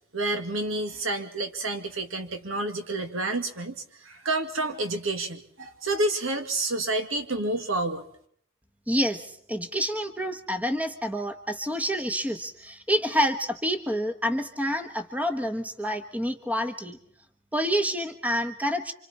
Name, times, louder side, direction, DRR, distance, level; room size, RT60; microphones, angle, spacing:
voice 1, 0.1-3.7 4.0-8.1, right 2 dB, 70° right, 7 dB, 2.1 m, -29 dB
voice 2, 8.9-17.0 17.5-18.9, equal, 5° right, 7 dB, 1.2 m, -28 dB
29.0 x 26.0 x 4.3 m, 0.64 s
head